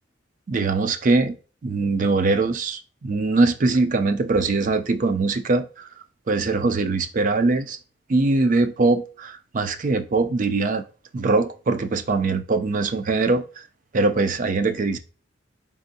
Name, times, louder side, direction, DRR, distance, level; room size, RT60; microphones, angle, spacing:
voice 1, 0.5-1.4 1.6-5.9 6.3-7.8 8.1-10.8 11.1-13.6 13.9-15.0, right 3 dB, 45° right, 0.4 m, -22 dB
4.3 x 3.5 x 2.7 m
head